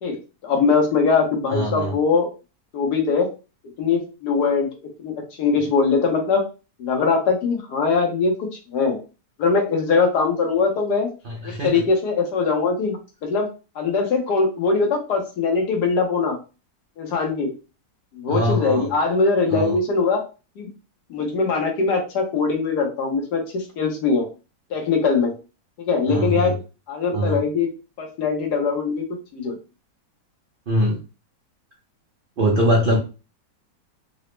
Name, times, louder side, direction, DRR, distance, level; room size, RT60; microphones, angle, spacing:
voice 1, 0.4-2.3 2.7-3.3 3.8-4.7 5.0-6.4 6.8-9.0 9.4-11.1 11.4-13.5 13.8-16.4 17.0-17.5 18.1-20.2 20.6-20.7 21.1-24.3 24.7-25.3 25.8-26.6 26.9-27.7 28.0-29.6, left 4 dB, 70° left, 2 dB, 1.3 m, -21 dB
voice 2, 1.5-1.9 11.2-11.7 18.3-18.9 19.5-19.8 26.1-26.5 27.1-27.4 30.7-31.0 32.4-33.0, equal, 75° right, -1 dB, 0.4 m, -22 dB
3.9 x 2.0 x 3.1 m, 0.32 s
omnidirectional pair, 1.9 m